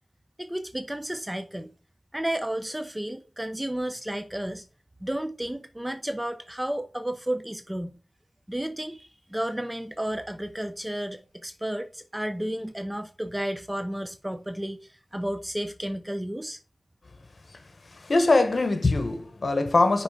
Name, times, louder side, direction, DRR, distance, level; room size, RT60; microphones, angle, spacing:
voice 1, 0.4-1.7 2.1-4.6 5.0-8.0 8.5-16.6, right 1 dB, 15° right, 0.7 m, -32 dB
voice 2, 17.9-20.0, left 2 dB, 70° left, 1.2 m, -22 dB
6.0 x 3.9 x 4.9 m
wide cardioid pair, 45°, 0 cm